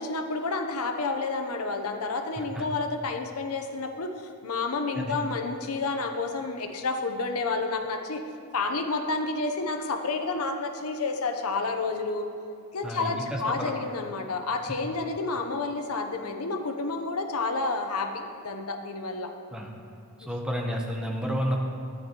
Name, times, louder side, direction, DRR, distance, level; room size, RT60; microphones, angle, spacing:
voice 1, 0.0-8.2 8.5-12.3 12.7-19.3 20.2-20.3, left 3 dB, 75° left, 5 dB, 0.7 m, -30 dB
voice 2, 12.8-13.7 19.5-19.7 20.3-21.6, equal, 5° right, 0 dB, 0.8 m, -30 dB
11.0 x 9.6 x 3.0 m, 2.5 s
head